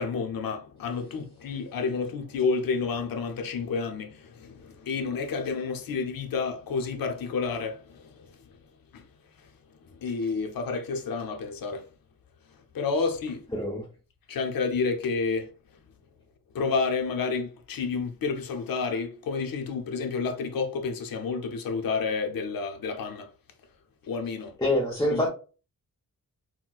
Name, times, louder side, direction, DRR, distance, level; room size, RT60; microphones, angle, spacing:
voice 1, 0.0-8.3 8.9-9.0 9.9-11.9 12.7-13.4 14.3-15.5 16.5-23.3 24.0-24.6 25.1-25.3, left 4 dB, 75° left, 0.7 m, -30 dB
voice 2, 13.5-13.8 24.6-25.3, left 1 dB, 10° left, 0.8 m, -25 dB
4.1 x 2.1 x 2.3 m
wide cardioid pair, 125°, 35 cm